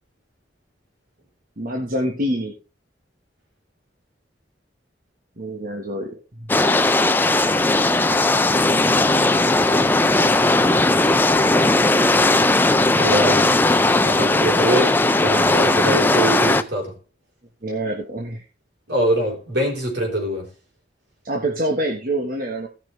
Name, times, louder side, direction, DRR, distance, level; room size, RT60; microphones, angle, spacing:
voice 1, 1.6-2.5 5.4-6.5 17.6-18.4 21.2-22.7, right 1 dB, 50° right, 1.5 m, -26 dB
sound 1, 6.5-16.6, left 2 dB, 10° left, 0.4 m, -17 dB
voice 2, 13.0-13.5 14.0-16.9 18.9-20.5, right 1 dB, 75° right, 4.2 m, -23 dB
16.5 x 6.0 x 3.3 m
head